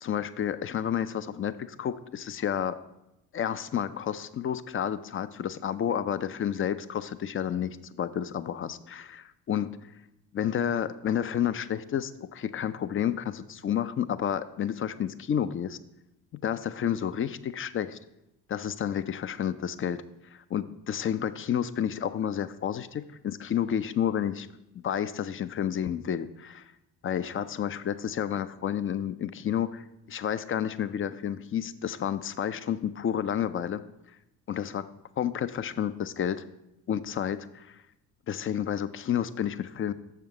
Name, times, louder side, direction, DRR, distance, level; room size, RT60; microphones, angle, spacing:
voice 1, 0.0-2.8 3.3-9.7 10.3-15.8 16.4-18.0 18.5-20.0 20.3-24.5 24.7-26.7 27.0-33.8 34.5-34.9 35.2-36.4 36.9-37.8 38.3-39.9, left 9 dB, 30° left, 14 dB, 0.4 m, -30 dB
7.0 x 5.7 x 4.8 m, 0.88 s
hypercardioid pair, 55°, 50 cm